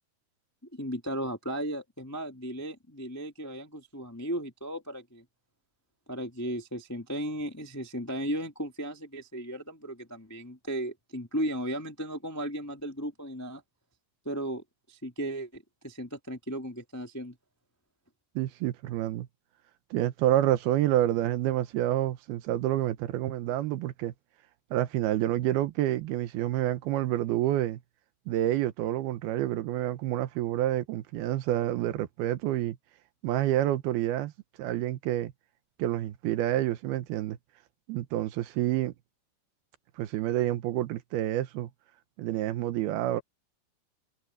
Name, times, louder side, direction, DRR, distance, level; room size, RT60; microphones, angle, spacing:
voice 1, 0.7-5.2 6.1-13.6 14.2-17.4, right 1 dB, 10° left, 0.7 m, -35 dB
voice 2, 18.4-19.3 19.9-24.1 24.7-27.8 28.3-32.8 33.2-34.3 34.6-35.3 35.8-37.4 37.9-38.9 40.0-41.7 42.2-43.2, right 13 dB, 80° right, 2.9 m, -28 dB
omnidirectional pair, 4.5 m